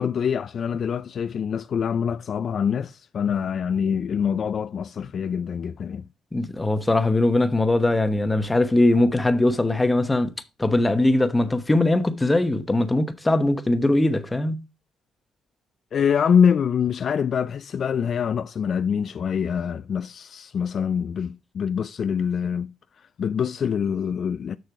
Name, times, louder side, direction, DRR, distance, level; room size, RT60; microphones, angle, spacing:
voice 1, 0.0-6.1 15.9-22.7 23.2-24.6, left 7 dB, 55° left, 0.4 m, -25 dB
voice 2, 6.3-10.3 10.6-14.6, left 2 dB, 15° left, 0.9 m, -21 dB
6.7 x 6.3 x 4.7 m
cardioid pair, 90°, 0 cm